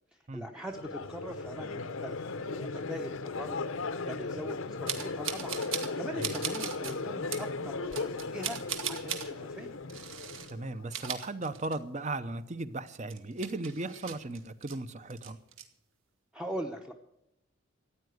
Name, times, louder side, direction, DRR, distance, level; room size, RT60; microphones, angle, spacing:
voice 1, 0.1-3.6 4.1-9.8 16.3-16.9, equal, 5° right, 0.8 m, -42 dB
Crowd, 0.7-10.9, left 3 dB, 70° left, 0.8 m, -37 dB
sound 1, 4.9-5.9 6.2-6.9 7.3-7.5 7.9-9.3 9.9-10.5 10.8-12.0 12.3-12.4 12.9-14.8 15.1-15.6, right 8 dB, 70° right, 1.8 m, -38 dB
voice 2, 10.5-15.4, right 2 dB, 35° right, 0.8 m, -37 dB
14.0 x 9.6 x 7.9 m
head